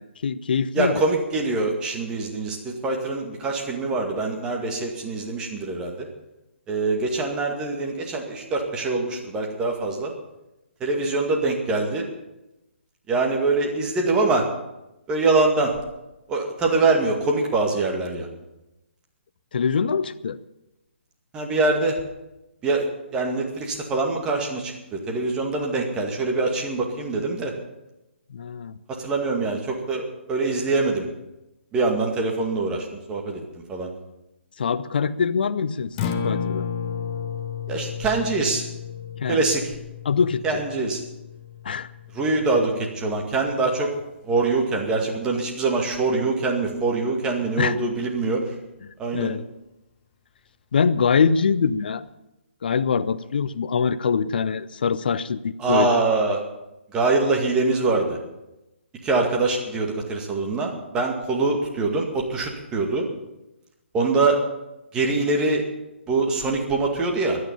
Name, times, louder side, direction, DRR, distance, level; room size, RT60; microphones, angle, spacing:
voice 1, 0.0-1.0 19.5-20.4 28.3-28.8 34.6-36.0 36.2-36.7 39.2-39.4 40.0-40.6 41.6-41.9 47.6-47.8 49.1-49.4 50.7-52.0 52.6-56.0, left 6 dB, 45° left, 15 dB, 0.7 m, -23 dB
voice 2, 0.7-6.1 6.7-10.1 10.8-12.1 13.1-14.5 15.1-15.7 16.3-18.3 21.3-22.0 22.6-22.9 23.1-27.5 29.0-31.0 31.7-33.4 33.7-33.9 37.7-38.6 39.3-39.6 40.4-41.0 42.1-43.9 44.2-48.4 49.0-49.3 55.6-56.4 56.9-58.2 59.0-63.1 63.9-64.4 64.9-65.6 66.1-67.4, right 3 dB, 10° right, 1 dB, 2.2 m, -24 dB
Acoustic guitar, 35.8-44.0, left 7 dB, 25° left, 1.0 m, -33 dB
23.0 x 9.6 x 5.6 m, 0.95 s
figure-of-eight pair, 135°, 7 cm